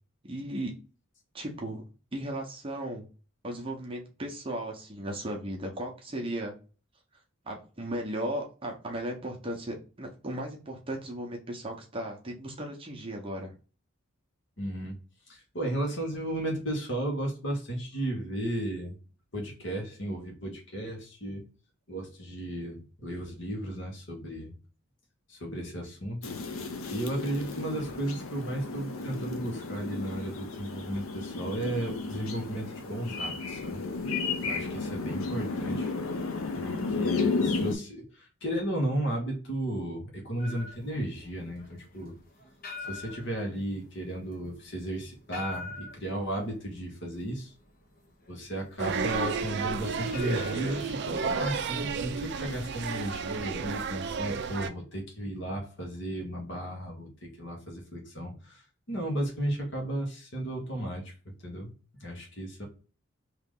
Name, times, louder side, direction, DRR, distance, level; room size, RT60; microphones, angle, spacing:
voice 1, 0.2-0.7 1.3-1.8 2.1-3.1 3.4-6.5 7.5-13.5 36.6-36.7, right 1 dB, 25° right, 0 dB, 0.7 m, -36 dB
voice 2, 14.6-14.9 15.3-19.0 19.3-21.5 21.9-24.5 25.3-26.2 26.9-33.8 34.4-35.9 36.5-42.1 42.9-47.5 48.3-61.1 61.4-61.7 62.0-62.7, right 1 dB, 60° left, 0 dB, 1.3 m, -34 dB
sound 1, 26.2-37.8, left 4 dB, 80° left, 0.6 m, -33 dB
sound 2, 40.4-51.7, left 4 dB, 45° left, 0.9 m, -45 dB
sound 3, 48.8-54.7, right 5 dB, 55° right, 0.4 m, -32 dB
3.2 x 2.9 x 3.7 m, 0.35 s
head